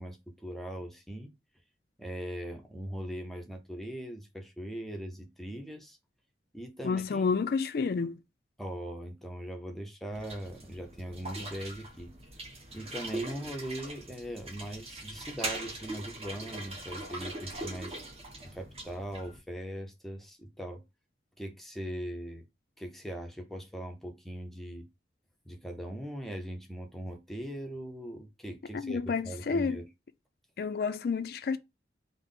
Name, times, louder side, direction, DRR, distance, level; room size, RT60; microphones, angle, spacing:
voice 1, 0.0-1.3 2.0-6.0 6.5-7.3 8.6-12.1 12.7-18.0 18.4-20.8 21.4-22.4 22.8-24.9 25.5-29.9, equal, ahead, 0.5 m, -40 dB
voice 2, 6.8-8.2 28.7-29.8 30.6-31.6, left 5 dB, 55° left, 0.4 m, -30 dB
sound 1, 10.1-19.4, right 2 dB, 35° right, 1.0 m, -41 dB
3.5 x 2.0 x 3.6 m
head